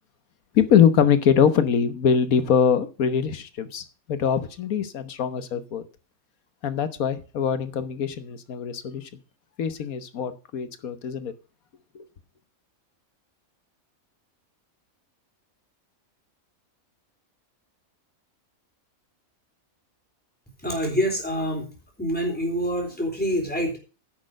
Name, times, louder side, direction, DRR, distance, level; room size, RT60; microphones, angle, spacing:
voice 1, 0.5-5.8 6.6-9.1 9.6-11.3 11.9-12.0, left 7 dB, 90° left, 1.5 m, -23 dB
voice 2, 20.6-21.7 22.0-23.8, equal, 5° left, 3.8 m, -26 dB
10.0 x 6.4 x 6.5 m
omnidirectional pair, 1.4 m